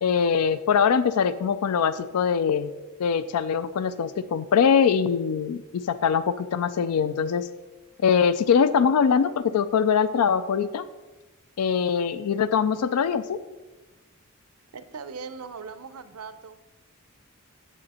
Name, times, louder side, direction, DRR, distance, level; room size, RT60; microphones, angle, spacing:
voice 1, 0.0-2.7 3.0-7.5 8.0-10.9 11.6-13.4, left 6 dB, 85° left, 14 dB, 0.4 m, -22 dB
voice 2, 14.7-16.6, right 5 dB, 85° right, 12 dB, 0.7 m, -39 dB
9.1 x 7.6 x 4.2 m, 1.1 s
head